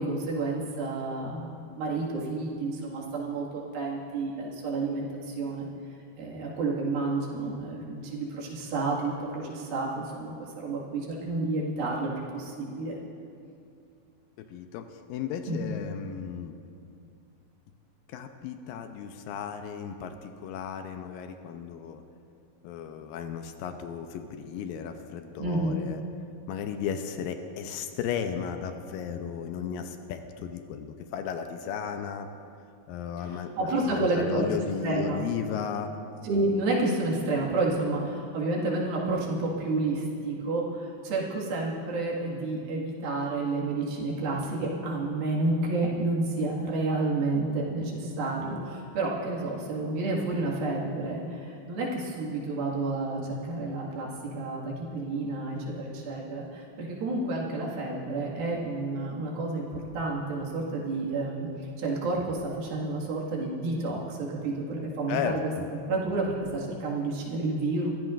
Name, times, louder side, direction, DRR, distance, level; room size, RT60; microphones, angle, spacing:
voice 1, 0.0-5.7 6.2-13.0 15.5-15.6 25.4-25.8 33.2-33.3 33.6-35.2 36.2-65.5 65.9-67.9, right 2 dB, 85° right, -3 dB, 3.8 m, -30 dB
voice 2, 14.4-16.6 18.1-22.0 22.6-26.0 26.5-32.3 32.9-36.0 65.1-65.7, left 7 dB, 85° left, 6 dB, 2.4 m, -35 dB
23.0 x 15.0 x 2.5 m, 2.5 s
omnidirectional pair, 4.1 m